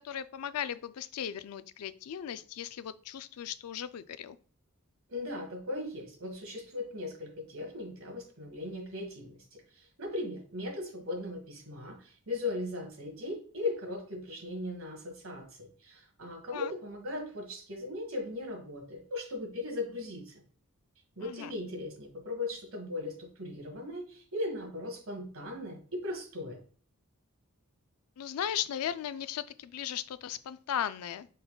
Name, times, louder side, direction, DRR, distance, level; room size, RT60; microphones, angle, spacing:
voice 1, 0.0-4.4 16.5-16.7 21.2-21.5 28.2-31.3, left 9 dB, 90° left, 14 dB, 0.4 m, -37 dB
voice 2, 5.1-20.4 21.2-26.6, left 2 dB, 65° right, 3 dB, 1.5 m, -38 dB
5.2 x 4.1 x 2.2 m, 0.43 s
head